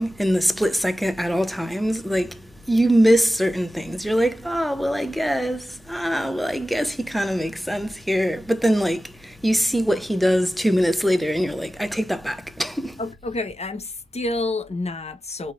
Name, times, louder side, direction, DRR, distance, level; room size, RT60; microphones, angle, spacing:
voice 1, 0.0-2.4 2.7-12.9, equal, ahead, 0.8 m, -22 dB
voice 2, 13.0-15.5, left 2 dB, 20° left, 1.1 m, -29 dB
3.9 x 3.7 x 3.7 m
cardioid pair, 90°, 30 cm